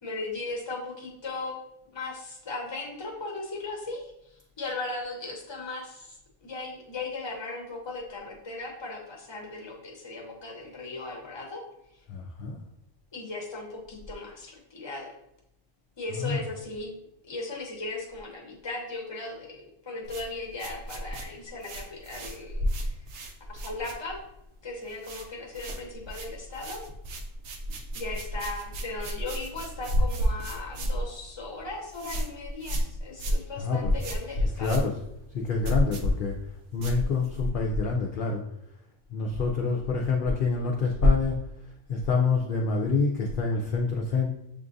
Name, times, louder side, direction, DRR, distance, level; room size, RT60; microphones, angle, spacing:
voice 1, 0.0-1.6 1.9-11.6 13.1-15.1 16.0-16.9 17.2-23.0 23.5-24.2 24.6-26.8 27.9-34.8, left 3 dB, 25° left, -1 dB, 0.7 m, -37 dB
voice 2, 12.1-12.6 16.1-16.5 33.6-35.0 35.3-36.4 36.7-38.4 39.1-41.4 41.9-44.3, left 3 dB, 60° left, 1 dB, 0.5 m, -26 dB
sound 1, 20.0-24.4 24.7-25.3 25.5-37.5, equal, 65° right, 0.9 m, -32 dB
6.8 x 2.4 x 2.6 m, 0.80 s
omnidirectional pair, 1.4 m